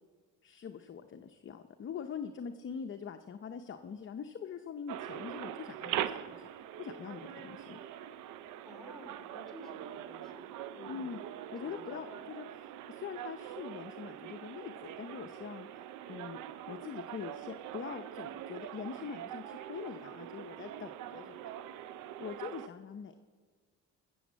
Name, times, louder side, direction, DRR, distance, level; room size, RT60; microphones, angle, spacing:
voice 1, 0.4-6.5 6.8-7.8 10.9-11.2 11.5-12.4 12.9-15.7 16.1-16.4 16.7-21.5 22.2-23.2, left 7 dB, 40° left, 6 dB, 0.7 m, -43 dB
sound 1, 4.9-22.7, right 11 dB, 85° right, 0.6 m, -43 dB
voice 2, 8.6-11.1 11.5-12.2, left 1 dB, ahead, 2 dB, 3.3 m, -52 dB
15.5 x 7.1 x 7.3 m, 1.5 s
cardioid pair, 90°, 30 cm